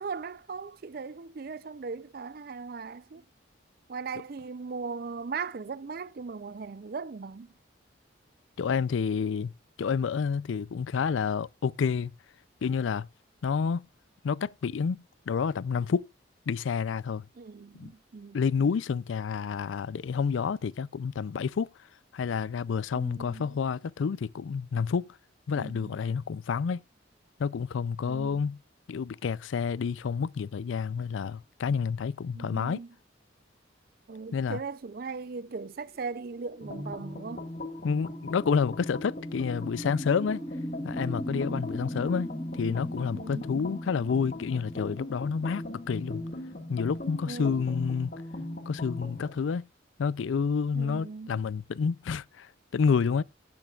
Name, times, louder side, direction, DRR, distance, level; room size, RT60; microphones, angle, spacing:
voice 1, 0.0-3.3 3.9-7.5 17.4-18.4 22.9-23.6 25.6-26.0 28.1-28.4 32.3-32.9 34.1-37.5 43.1-43.7 47.3-47.6 50.7-51.4, right 4 dB, 50° right, 0.4 m, -38 dB
voice 2, 8.6-9.5 9.8-12.1 12.6-13.1 13.4-13.9 14.2-16.1 16.5-17.3 17.7-17.9 18.3-21.7 22.1-25.2 25.5-26.8 27.4-28.6 28.9-32.8 34.3-34.6 37.8-40.4 40.8-42.3 42.6-46.2 46.7-48.1 48.7-49.7 50.0-53.2, left 6 dB, 80° left, 0.4 m, -29 dB
sound 1, 35.5-47.6, equal, 10° left, 1.2 m, -41 dB
sound 2, 36.6-49.4, left 1 dB, 50° left, 1.8 m, -39 dB
16.5 x 7.5 x 2.4 m
head